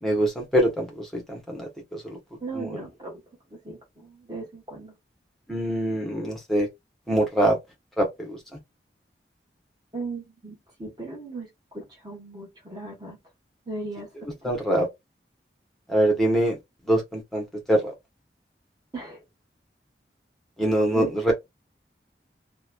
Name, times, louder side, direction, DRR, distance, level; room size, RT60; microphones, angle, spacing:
voice 1, 0.0-2.2 2.5-2.7 5.5-6.7 7.1-7.6 8.0-8.4 14.4-14.9 15.9-16.6 16.9-17.9 20.6-21.3, right 1 dB, ahead, 0.8 m, -24 dB
voice 2, 2.4-3.2 3.6-4.9 9.9-13.2 13.7-14.1 14.4-14.8 18.9-19.2 20.9-21.1, right 3 dB, 25° right, 1.1 m, -37 dB
2.9 x 2.1 x 2.3 m
head